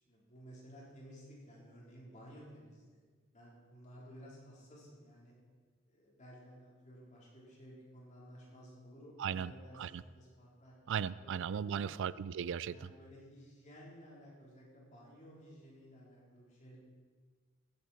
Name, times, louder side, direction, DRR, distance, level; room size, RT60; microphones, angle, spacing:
voice 1, 0.1-3.0 3.3-5.3 5.9-10.8 11.1-11.3 11.6-11.9 12.7-16.8, equal, 35° left, -5 dB, 4.0 m, -55 dB
voice 2, 9.2-9.5 9.8-9.9 10.9-12.8, right 8 dB, 60° right, 18 dB, 0.4 m, -36 dB
15.5 x 10.5 x 4.4 m, 1.5 s
head